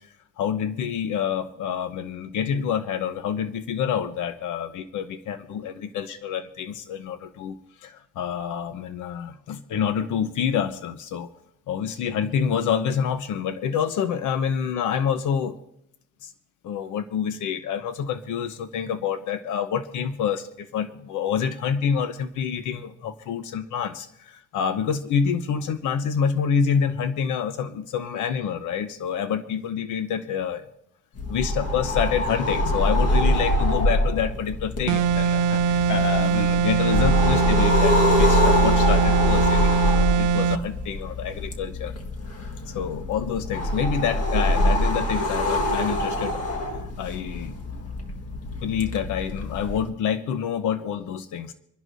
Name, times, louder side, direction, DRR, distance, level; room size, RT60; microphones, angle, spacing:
voice 1, 0.4-7.6 7.8-11.3 11.7-15.6 16.2-16.3 16.6-30.6 31.3-37.9 38.2-41.9 42.7-46.4 47.0-47.8 48.6-51.5, left 7 dB, 85° left, 9 dB, 0.9 m, -27 dB
sound 1, 31.2-49.9, left 1 dB, 55° left, 1.6 m, -24 dB
sound 2, 34.9-40.7, right 6 dB, 80° right, 0.6 m, -22 dB
27.0 x 11.0 x 2.7 m, 0.79 s
cardioid pair, 90°, 30 cm